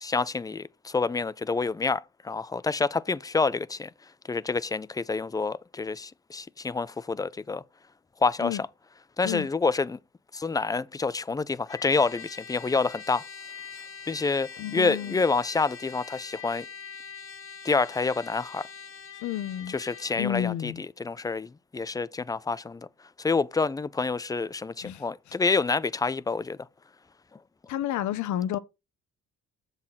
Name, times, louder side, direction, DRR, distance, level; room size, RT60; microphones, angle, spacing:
voice 1, 0.0-3.9 4.3-7.6 8.2-8.6 9.2-10.0 10.3-13.2 14.1-16.7 17.6-18.7 19.7-22.9 23.2-26.6, left 4 dB, 15° left, 0.3 m, -28 dB
Trumpet, 11.7-20.2, left 6 dB, 45° left, 1.0 m, -43 dB
voice 2, 14.6-15.2 19.2-19.8 20.2-20.8 24.8-25.4 27.7-28.6, left 11 dB, 70° left, 0.7 m, -31 dB
7.4 x 4.0 x 5.7 m
cardioid pair, 90°, 30 cm